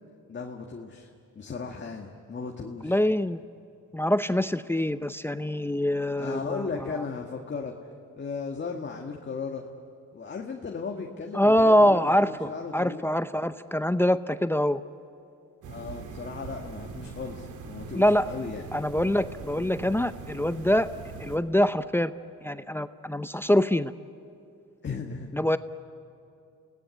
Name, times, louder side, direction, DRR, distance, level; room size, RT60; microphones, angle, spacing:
voice 1, 0.3-1.1 1.4-3.0 6.2-7.8 8.2-9.7 10.1-13.0 15.7-18.6 24.8-25.4, left 5 dB, 35° left, 2 dB, 1.9 m, -36 dB
voice 2, 2.8-3.4 3.9-6.7 11.3-14.8 17.9-18.3 18.7-20.9 21.2-22.1 22.4-23.9 25.3-25.6, equal, 10° left, 12 dB, 0.6 m, -24 dB
sound 1, 15.6-21.4, right 5 dB, 80° right, 2.4 m, -41 dB
30.0 x 18.0 x 9.6 m, 2.6 s
cardioid pair, 90°, 30 cm